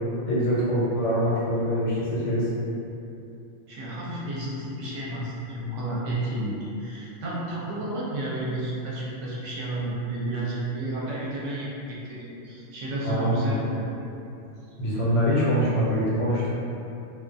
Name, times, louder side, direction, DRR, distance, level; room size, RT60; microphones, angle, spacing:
voice 1, 0.2-2.5 13.0-13.6 14.8-16.6, equal, 70° left, -7 dB, 1.0 m, -24 dB
voice 2, 3.7-13.8, right 1 dB, 70° right, -6 dB, 0.9 m, -31 dB
2.4 x 2.2 x 2.5 m, 2.8 s
omnidirectional pair, 1.4 m